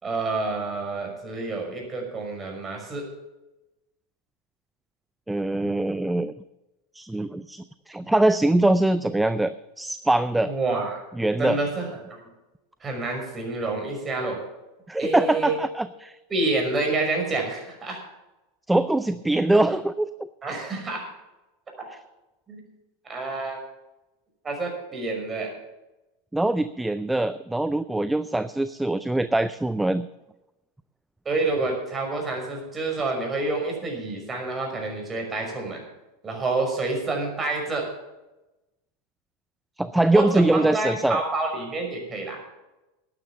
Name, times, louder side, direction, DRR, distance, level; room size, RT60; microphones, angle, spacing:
voice 1, 0.0-3.1 10.4-11.0 11.4-12.2 12.8-14.4 15.0-15.6 16.3-18.0 20.4-21.1 21.8-21.9 22.5-22.6 23.0-23.6 24.4-25.5 31.3-35.8 36.2-37.9 40.1-42.4, right 3 dB, 25° right, 2 dB, 5.7 m, -28 dB
voice 2, 5.3-6.3 6.9-10.5 11.2-11.6 14.9-16.2 18.7-20.1 26.3-30.1 39.8-41.2, right 2 dB, 5° right, 13 dB, 0.5 m, -23 dB
12.0 x 10.0 x 6.9 m, 1.0 s
hypercardioid pair, 100°, 0 cm